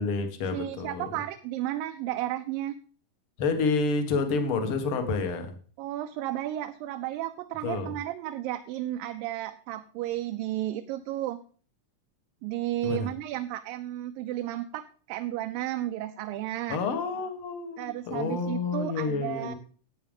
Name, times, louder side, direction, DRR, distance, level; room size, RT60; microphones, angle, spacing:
voice 1, 0.0-1.1 3.4-5.6 7.6-7.9 12.8-13.1 16.7-19.5, left 4 dB, 50° left, 6 dB, 1.9 m, -29 dB
voice 2, 0.5-2.7 5.8-11.4 12.4-14.8 15.1-16.8 17.8-19.6, right 14 dB, 85° right, 7 dB, 2.4 m, -33 dB
10.5 x 8.8 x 5.3 m, 0.41 s
omnidirectional pair, 3.9 m